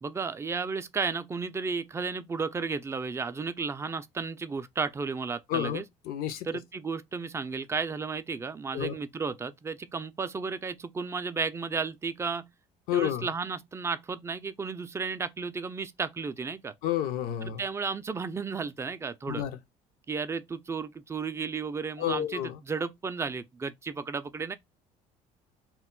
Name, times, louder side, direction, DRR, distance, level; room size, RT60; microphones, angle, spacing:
voice 1, 0.0-5.8 6.4-12.5 12.9-16.7 17.4-19.4 20.1-24.5, right 5 dB, 15° right, 0.3 m, -33 dB
voice 2, 5.5-6.5 8.7-9.0 12.9-13.3 16.8-17.6 19.3-19.6 22.0-22.5, left 11 dB, 75° left, 0.5 m, -30 dB
2.2 x 2.0 x 3.7 m
supercardioid pair, 85°, 15 cm